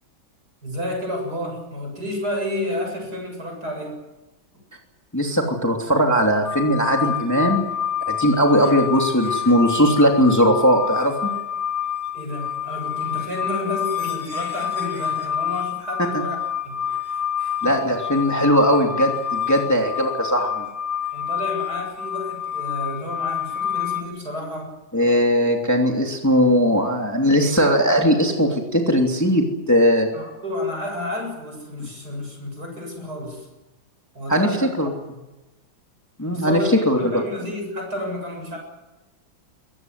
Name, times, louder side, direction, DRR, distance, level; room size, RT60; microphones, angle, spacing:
voice 1, 0.6-4.0 12.1-16.4 16.6-17.7 21.1-24.7 30.1-33.5 34.1-34.7 36.3-38.6, left 1 dB, 50° right, 2 dB, 7.8 m, -31 dB
voice 2, 5.1-7.6 8.1-11.3 17.6-20.6 24.9-30.1 34.3-34.9 36.2-36.6 36.9-37.2, equal, 10° left, 1 dB, 2.8 m, -19 dB
sound 1, 6.4-24.0, left 9 dB, 70° left, 6.0 m, -28 dB
22.5 x 19.0 x 9.4 m, 1.1 s
omnidirectional pair, 2.2 m